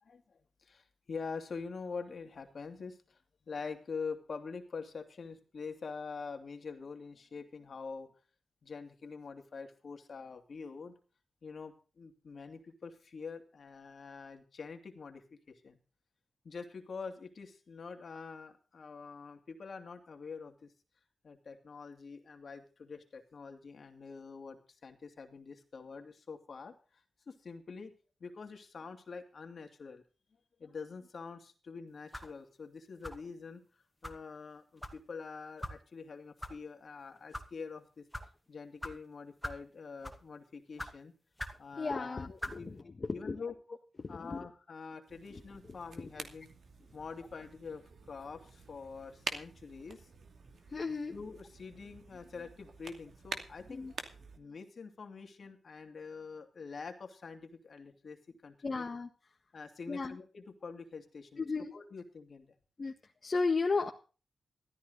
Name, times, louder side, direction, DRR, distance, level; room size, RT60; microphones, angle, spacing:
voice 1, 0.0-3.2 3.5-8.1 8.6-10.9 11.4-15.8 16.4-20.7 21.2-26.7 27.3-27.9 28.2-30.0 30.6-33.6 34.0-38.1 38.5-41.1 41.6-42.7 43.1-43.5 44.1-46.5 46.9-50.1 50.8-54.0 54.4-58.9 59.5-61.4 61.7-62.5, left 5 dB, 60° left, 5 dB, 2.7 m, -45 dB
sound 1, 32.1-32.4 33.0-33.3 34.0-34.2 34.8-35.0 35.6-35.8 36.4-36.5 37.2-37.5 38.1-38.3 38.8-38.9 39.4-39.6 40.0-40.3 40.8-40.9 41.4-41.6 42.4-42.6, left 1 dB, 10° left, 2.3 m, -41 dB
voice 2, 41.8-43.4 44.0-44.5 45.3-45.4 50.7-51.1 53.7-53.9 58.6-59.1 59.9-60.2 61.4-61.7 62.8-63.0 63.2-63.9, left 4 dB, 45° left, 2 dB, 1.6 m, -34 dB
sound 2, 45.1-54.4, right 5 dB, 75° right, 2.5 m, -47 dB
14.5 x 13.5 x 4.0 m, 0.36 s
cardioid pair, 70°, 0 cm